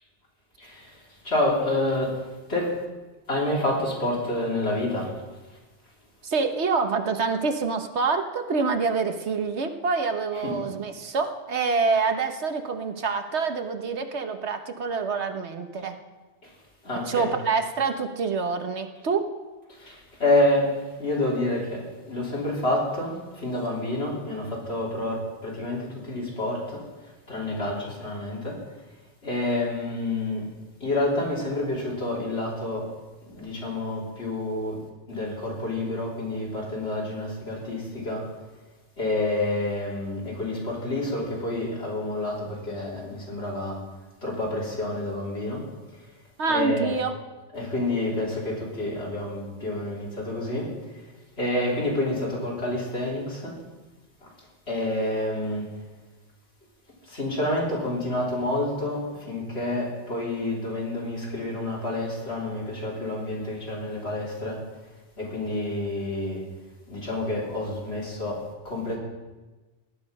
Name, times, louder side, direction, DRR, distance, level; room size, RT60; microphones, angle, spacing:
voice 1, 0.6-1.0 1.2-2.2 2.5-2.7 3.3-5.1 16.4-16.5 16.8-17.3 19.7-26.8 27.3-28.6 29.2-30.4 30.8-32.9 33.3-34.8 35.1-38.2 39.0-43.8 44.2-45.6 46.5-47.0 47.5-50.7 51.4-53.6 54.7-55.8 57.1-64.6 65.2-66.4 66.9-69.0, left 1 dB, 65° left, -4 dB, 4.3 m, -28 dB
voice 2, 6.2-16.0 16.9-19.3 46.4-47.1, right 4 dB, 75° right, 7 dB, 1.4 m, -26 dB
18.0 x 10.5 x 5.4 m, 1.2 s
omnidirectional pair, 1.2 m